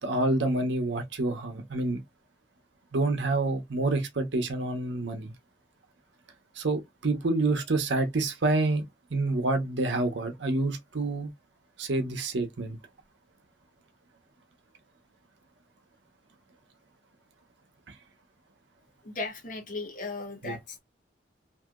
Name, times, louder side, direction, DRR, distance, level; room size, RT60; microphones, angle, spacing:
voice 1, 0.0-2.0 2.9-5.3 6.6-8.8 9.1-11.3 11.8-12.8 20.4-20.6, right 2 dB, 75° right, 0.8 m, -28 dB
voice 2, 19.0-20.8, left 3 dB, 45° left, 0.8 m, -36 dB
2.8 x 2.6 x 2.4 m
head